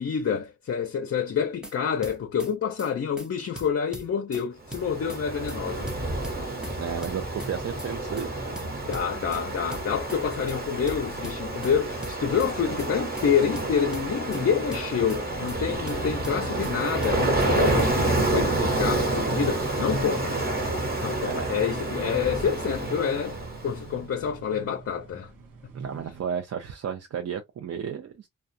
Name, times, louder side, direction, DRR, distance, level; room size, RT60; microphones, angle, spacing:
voice 1, 0.0-5.9 8.8-20.4 21.0-25.3, left 7 dB, 45° left, 0.5 m, -28 dB
sound 1, 1.4-1.7 2.0-2.5 2.8-2.9 3.2-3.3 3.6-4.4 4.7-5.2 5.5-5.6 5.9-6.8 7.0-7.5 7.8-7.9 8.2-8.3 8.6-9.4 9.7-10.2 10.5-10.6 10.9-11.7 12.0-12.5 12.8-12.9 13.2-13.3 13.6-14.4 14.7-15.2 15.5-15.6 15.9-16.7 17.0-17.5 17.8-17.9 18.2-18.3, right 1 dB, ahead, 0.6 m, -40 dB
Ocean, 4.7-23.8, right 2 dB, 30° right, 1.0 m, -29 dB
voice 2, 6.8-8.3 21.2-21.5 25.7-28.3, right 7 dB, 50° right, 0.5 m, -33 dB
sound 2, 15.3-26.2, right 4 dB, 75° right, 0.9 m, -45 dB
2.3 x 2.2 x 2.6 m
cardioid pair, 70°, 33 cm